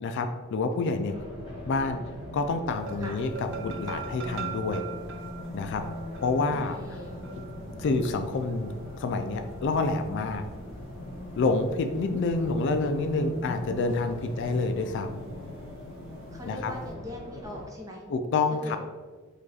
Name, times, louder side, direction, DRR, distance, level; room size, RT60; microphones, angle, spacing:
voice 1, 0.0-1.1 1.7-2.0 2.3-4.9 5.5-5.8 6.2-7.0 7.3-7.4 7.8-8.7 9.0-10.4 11.4-15.2 16.5-16.7 18.1-18.8, left 3 dB, 55° left, 7 dB, 0.3 m, -28 dB
Race car auto racing, 1.1-17.6, left 1 dB, 25° left, 1.4 m, -40 dB
sound 1, 2.7-10.0 13.9-14.3 14.6-14.7, right 7 dB, 60° right, 0.4 m, -43 dB
voice 2, 6.5-7.2 16.3-18.0 18.6-18.8, left 1 dB, 15° right, -1 dB, 0.7 m, -41 dB
5.1 x 2.4 x 4.1 m, 1.4 s
head